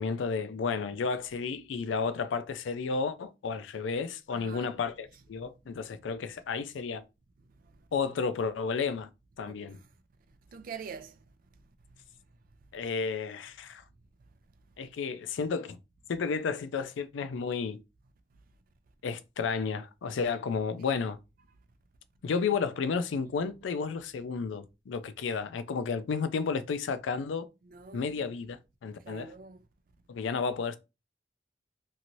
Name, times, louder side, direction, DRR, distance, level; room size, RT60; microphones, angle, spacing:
voice 1, 0.0-7.0 7.9-9.1 9.4-9.8 12.7-13.8 14.8-15.8 16.1-17.8 19.0-21.2 22.2-27.5 27.9-29.3 30.1-30.8, left 5 dB, 85° left, 0.4 m, -32 dB
voice 2, 4.3-4.8 5.4-5.6 7.5-7.8 9.5-9.9 10.5-11.2 11.9-12.0 20.9-21.0 27.6-28.3 29.0-29.7, right 6 dB, 50° right, 0.4 m, -46 dB
2.7 x 2.6 x 2.9 m
head